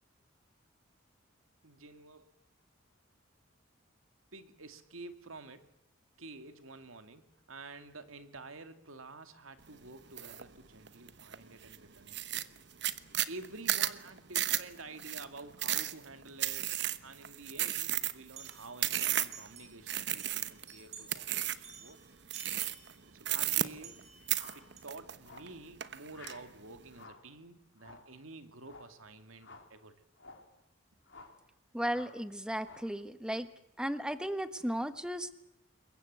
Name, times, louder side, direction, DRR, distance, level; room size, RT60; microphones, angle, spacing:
voice 1, 1.6-2.3 4.3-5.7 6.2-12.4 13.3-22.0 23.2-24.1 24.5-29.9, right 3 dB, 85° right, 9 dB, 2.2 m, -50 dB
sound 1, 10.2-10.4 10.9-11.4 11.7-11.8 12.1-19.5 19.9-20.7 21.1-21.7 22.3-22.9 23.2-24.0 24.3-25.5 25.8-26.3, right 13 dB, 55° right, 1.1 m, -33 dB
sound 2, 18.4-19.8 20.2-21.2 21.6-24.8, right 6 dB, 35° right, 4.4 m, -53 dB
sound 3, 24.3-24.7 25.2-25.6 26.1-26.5 26.9-27.3 27.8-28.1 28.6-29.0 29.4-29.7 30.2-30.5 31.1-31.4 31.9-32.2 32.6-33.0, left 3 dB, 65° left, 3.6 m, -53 dB
voice 2, 31.7-33.5 33.8-35.3, equal, 5° right, 10 dB, 1.2 m, -35 dB
27.5 x 22.5 x 8.1 m, 0.77 s
head